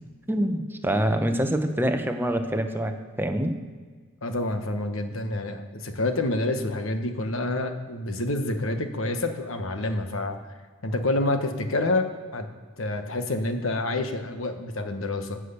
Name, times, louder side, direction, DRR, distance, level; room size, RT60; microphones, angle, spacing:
voice 1, 0.3-3.5, right 1 dB, 10° right, 6 dB, 0.8 m, -25 dB
voice 2, 4.2-10.4 10.8-12.5 12.8-15.4, left 2 dB, 70° left, 7 dB, 1.2 m, -28 dB
13.5 x 6.3 x 8.3 m, 1.5 s
head